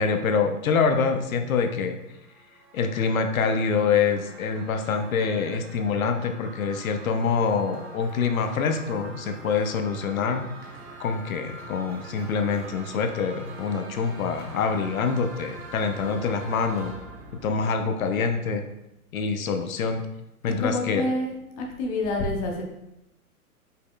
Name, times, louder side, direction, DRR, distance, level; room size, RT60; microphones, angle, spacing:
voice 1, 0.0-2.0 2.7-10.4 11.0-16.9 17.4-18.6 19.1-20.1 20.4-21.0, left 5 dB, 65° left, 6 dB, 0.6 m, -25 dB
sound 1, 1.9-18.7, right 2 dB, 45° right, 1.0 m, -45 dB
voice 2, 20.5-22.6, left 2 dB, 25° left, 0 dB, 0.5 m, -28 dB
5.3 x 4.1 x 2.2 m, 0.87 s
hypercardioid pair, 125°, 45 cm